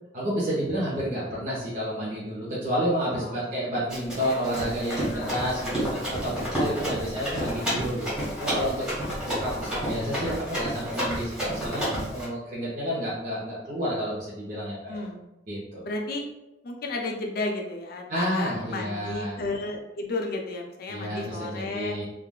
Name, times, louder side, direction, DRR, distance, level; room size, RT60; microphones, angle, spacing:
voice 1, 0.1-8.8 9.2-15.0 15.5-15.8 18.1-19.4 20.9-22.0, equal, 50° right, -8 dB, 0.8 m, -30 dB
voice 2, 3.2-3.5 5.0-5.4 9.0-9.2 14.9-15.3 15.8-16.3 16.6-22.0, left 2 dB, 60° left, 1 dB, 0.5 m, -33 dB
Run, 3.9-12.2, equal, 5° right, 1.3 m, -30 dB
3.4 x 2.4 x 2.3 m, 0.93 s
head